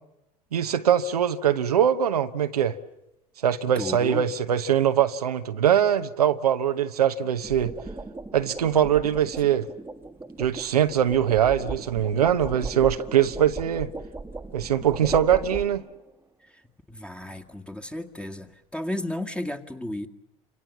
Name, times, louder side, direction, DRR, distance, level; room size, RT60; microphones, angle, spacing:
voice 1, 0.5-2.8 3.4-7.7 8.3-9.7 10.4-13.9 14.5-15.8, right 9 dB, 85° right, 1.0 m, -22 dB
sound 1, 1.7-2.1 7.2-16.1, right 3 dB, 10° right, 1.6 m, -37 dB
voice 2, 3.8-4.3 16.9-20.1, left 1 dB, 5° left, 2.0 m, -33 dB
29.5 x 26.0 x 7.3 m
hypercardioid pair, 75°, 19 cm